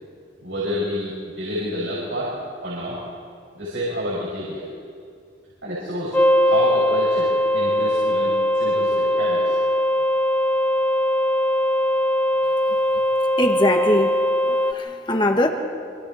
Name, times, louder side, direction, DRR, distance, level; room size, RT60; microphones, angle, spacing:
voice 1, 0.4-2.3 2.6-3.0 3.5-4.6 5.6-9.5, equal, 85° right, -7 dB, 6.2 m, -28 dB
sound 1, 6.1-14.7, left 1 dB, 10° left, 0.5 m, -20 dB
voice 2, 13.4-14.1 14.5-15.5, left 1 dB, 25° left, 4 dB, 1.7 m, -21 dB
26.5 x 26.0 x 4.3 m, 2.2 s
head